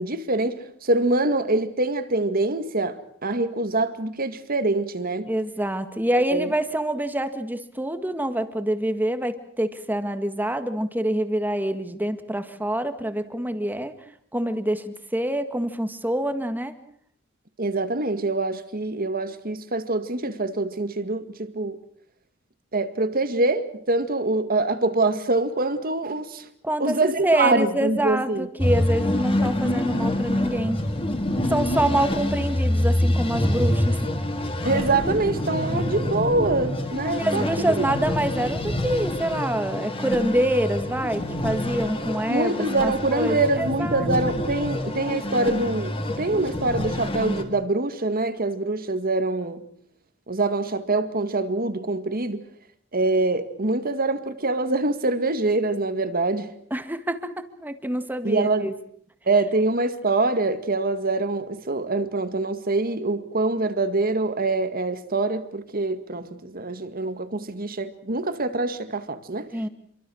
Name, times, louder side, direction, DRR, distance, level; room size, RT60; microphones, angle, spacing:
voice 1, 0.0-5.3 6.3-6.5 17.6-21.8 22.7-26.5 26.8-28.5 34.6-37.4 37.8-37.9 42.3-49.6 50.3-52.4 52.9-56.5 58.2-58.7 59.3-69.5, right 2 dB, 45° right, 2.0 m, -24 dB
voice 2, 5.3-13.9 14.3-16.7 26.6-30.8 31.5-34.0 37.2-44.1 56.7-58.7 69.5-69.7, right 1 dB, 10° right, 1.8 m, -26 dB
sound 1, 28.6-47.4, left 1 dB, 25° left, 3.1 m, -26 dB
28.5 x 23.5 x 6.4 m
head